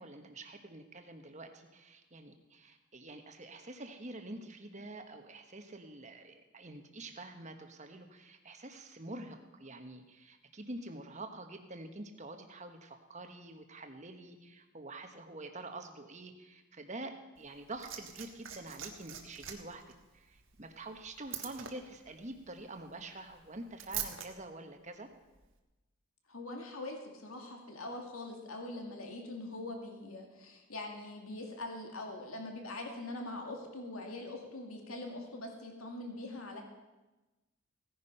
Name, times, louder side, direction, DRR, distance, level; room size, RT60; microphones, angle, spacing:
voice 1, 0.0-19.8 20.1-25.1, right 2 dB, 35° right, 6 dB, 1.3 m, -47 dB
Liquid, 17.4-24.3 25.3-25.5, right 10 dB, 60° right, 1.4 m, -45 dB
voice 2, 26.3-36.6, left 2 dB, 80° left, 2 dB, 2.2 m, -43 dB
16.5 x 10.0 x 5.5 m, 1.1 s
head